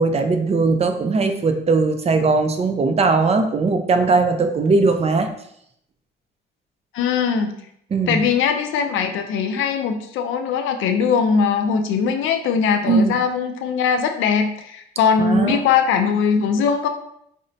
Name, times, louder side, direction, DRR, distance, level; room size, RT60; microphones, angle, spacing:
voice 1, 0.0-5.3 7.9-8.2 12.9-13.2 15.2-15.6, right 3 dB, 30° right, 7 dB, 0.4 m, -19 dB
voice 2, 6.9-7.5 8.1-16.9, left 6 dB, 80° left, 6 dB, 0.4 m, -20 dB
5.0 x 2.1 x 2.6 m, 0.70 s
cardioid pair, 90°, 20 cm